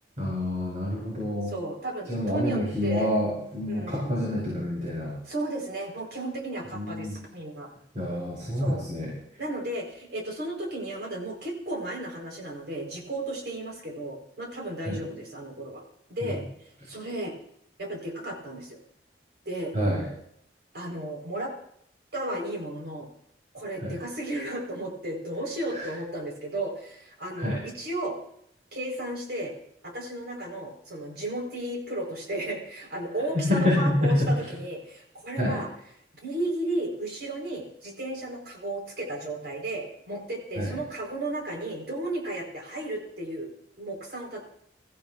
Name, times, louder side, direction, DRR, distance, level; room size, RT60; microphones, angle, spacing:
voice 1, 0.2-1.5 2.1-5.1 6.7-7.2 7.9-9.1 14.8-15.0 19.7-20.0 23.8-24.0 25.7-25.9 27.4-27.6 33.3-34.3 35.4-35.6 40.6-40.7, left 1 dB, 45° right, -5 dB, 5.0 m, -27 dB
voice 2, 1.5-3.1 3.7-4.2 5.2-7.7 8.6-8.8 9.4-15.8 16.1-16.4 16.8-17.3 17.8-18.8 19.5-19.8 20.7-21.5 22.1-23.1 23.5-28.2 28.7-29.5 29.8-35.7 36.2-43.5 43.8-44.4, right 1 dB, 65° right, 0 dB, 4.3 m, -34 dB
24.0 x 14.5 x 2.5 m, 0.70 s
head